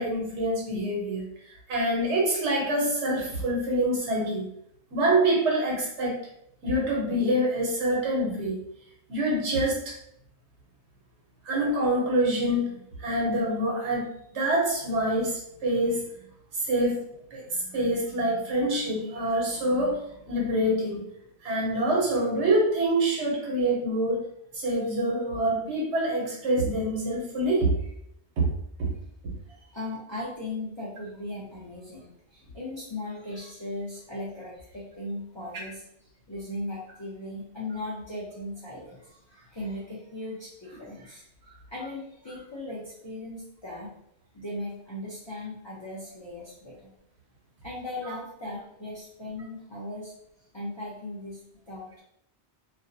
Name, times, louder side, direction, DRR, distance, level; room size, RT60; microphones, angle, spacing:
voice 1, 0.0-4.5 4.9-6.2 6.6-8.6 9.1-9.9 11.4-16.0 16.5-21.0 21.4-24.2 24.5-27.7 28.4-28.5, right 1 dB, 80° right, -2 dB, 1.1 m, -26 dB
voice 2, 29.5-35.8 36.3-41.3 41.7-43.9 44.3-46.9 47.6-50.1 50.5-52.0, left 1 dB, 35° left, -8 dB, 0.4 m, -38 dB
2.5 x 2.0 x 2.6 m, 0.74 s
omnidirectional pair, 1.1 m